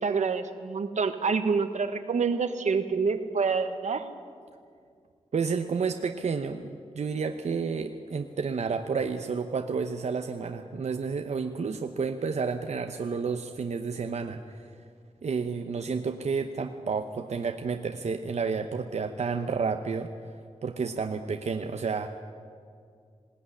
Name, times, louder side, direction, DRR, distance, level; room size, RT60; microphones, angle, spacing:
voice 1, 0.0-4.1, right 5 dB, 90° right, 8 dB, 1.5 m, -27 dB
voice 2, 5.3-14.6 15.2-20.1 20.6-22.1, right 5 dB, 70° right, 5 dB, 1.0 m, -30 dB
20.0 x 17.5 x 9.8 m, 2.2 s
wide cardioid pair, 135°, 12 cm